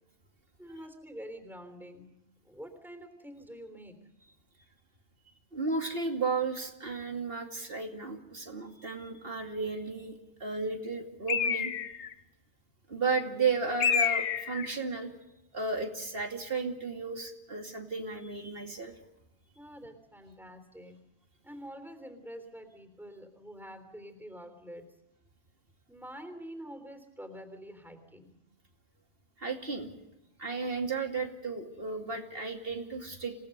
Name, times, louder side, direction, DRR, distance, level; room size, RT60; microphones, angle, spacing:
voice 1, 0.6-2.1 2.4-4.0 19.5-21.0 21.4-24.9 25.9-28.3, equal, ahead, 7 dB, 3.4 m, -46 dB
voice 2, 5.5-11.7 12.9-15.1 15.5-18.9 29.4-29.9 30.4-33.3, right 4 dB, 60° right, 4 dB, 2.7 m, -34 dB
Bird, 11.3-12.1 13.8-14.7, left 7 dB, 85° left, 1.2 m, -28 dB
27.5 x 18.0 x 6.7 m, 0.93 s
omnidirectional pair, 1.1 m